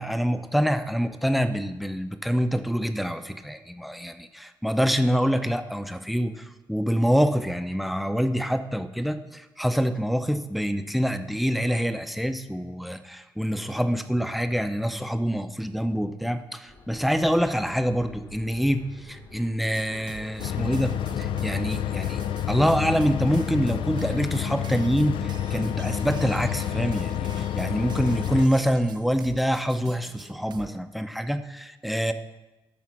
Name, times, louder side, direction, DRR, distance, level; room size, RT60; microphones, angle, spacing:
voice 1, 0.0-22.2 22.5-32.1, equal, ahead, 9 dB, 0.6 m, -26 dB
sound 1, 16.7-23.7, left 2 dB, 65° left, 1.7 m, -49 dB
sound 2, 19.7-30.8, right 7 dB, 60° right, 0.4 m, -46 dB
sound 3, 20.4-28.5, left 11 dB, 80° left, 0.4 m, -29 dB
11.5 x 4.3 x 6.0 m, 1.1 s
cardioid pair, 75°, 9 cm